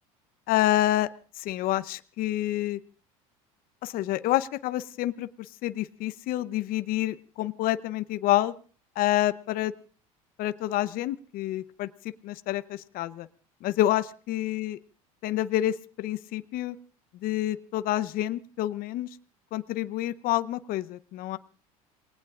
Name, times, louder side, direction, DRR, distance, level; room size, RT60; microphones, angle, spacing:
voice 1, 0.5-1.1 1.4-2.8 3.8-8.5 9.0-9.7 10.4-11.9 12.2-13.3 13.6-14.8 15.2-16.8 17.1-19.1 19.5-21.4, left 14 dB, 55° left, 13 dB, 0.8 m, -28 dB
27.5 x 18.5 x 2.5 m, 0.39 s
hypercardioid pair, 75°, 18 cm